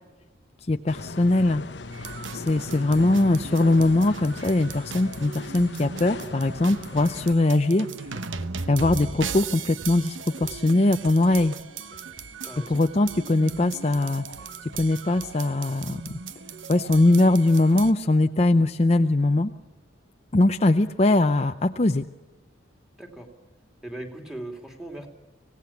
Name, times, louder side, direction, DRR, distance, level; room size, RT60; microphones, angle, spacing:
voice 1, 0.7-1.6 2.3-7.9 8.7-11.5 12.6-16.1 16.7-19.5 20.3-22.1, left 2 dB, 35° left, 7 dB, 0.6 m, -21 dB
sound 1, 0.9-7.3, left 3 dB, 65° left, 1.0 m, -38 dB
sound 2, 1.9-17.9, right 5 dB, 80° right, 1.0 m, -38 dB
voice 2, 23.8-25.1, right 1 dB, ahead, 3 dB, 2.7 m, -38 dB
25.5 x 17.5 x 7.2 m, 1.1 s
head